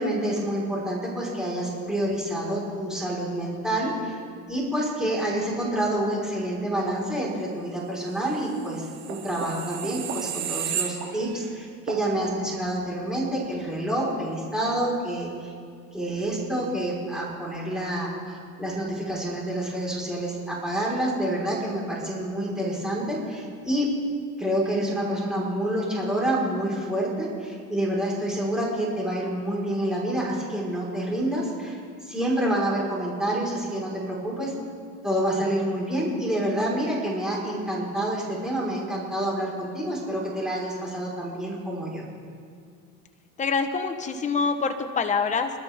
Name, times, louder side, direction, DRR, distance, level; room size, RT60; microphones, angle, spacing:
voice 1, 0.0-4.2 4.5-15.5 15.9-23.9 24.4-34.5 35.0-42.0, right 1 dB, ahead, -5 dB, 4.6 m, -28 dB
sound 1, 8.6-11.5 11.9-12.0, right 8 dB, 70° right, 2.8 m, -32 dB
voice 2, 43.4-45.5, left 5 dB, 20° left, 6 dB, 1.1 m, -25 dB
28.5 x 12.5 x 3.6 m, 2.2 s
supercardioid pair, 115°, 37 cm